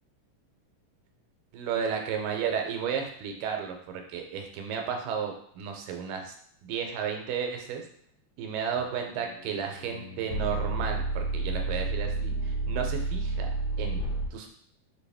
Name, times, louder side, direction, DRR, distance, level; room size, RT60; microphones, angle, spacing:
voice 1, 1.5-6.3 6.6-7.8 8.4-13.5 13.8-14.5, right 7 dB, 85° right, 3 dB, 2.2 m, -33 dB
sound 1, 8.8-14.3, right 2 dB, 80° left, 1.9 m, -31 dB
5.5 x 2.4 x 3.3 m, 0.65 s
omnidirectional pair, 3.7 m